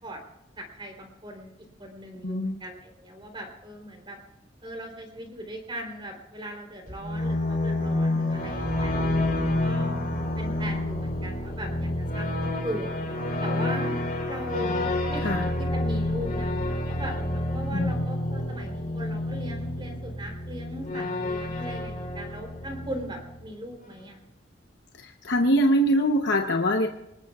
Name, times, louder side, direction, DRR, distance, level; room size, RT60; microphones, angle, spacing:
voice 1, 0.6-1.5 1.8-4.2 4.6-9.9 10.4-13.0 13.4-13.9 14.3-14.8 15.1-15.3 15.6-24.2, equal, 25° right, 3 dB, 3.5 m, -39 dB
voice 2, 2.2-2.6 15.2-15.5 17.7-18.1 25.0-26.9, equal, 65° left, 3 dB, 0.9 m, -24 dB
sound 1, 6.9-23.5, left 1 dB, 50° left, 3.6 m, -29 dB
24.5 x 19.5 x 2.4 m, 0.85 s
head